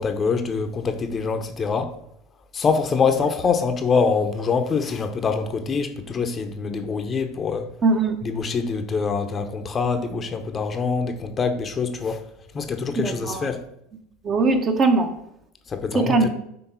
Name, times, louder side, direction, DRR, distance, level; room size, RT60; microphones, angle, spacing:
voice 1, 0.0-1.9 2.5-7.7 8.2-12.2 12.5-13.6 15.7-16.3, left 5 dB, 30° left, 0.8 m, -24 dB
voice 2, 7.8-8.2 13.0-13.5 14.2-15.1 15.9-16.3, right 3 dB, 35° right, 1.0 m, -20 dB
5.9 x 3.7 x 5.5 m
hypercardioid pair, 90°, 0 cm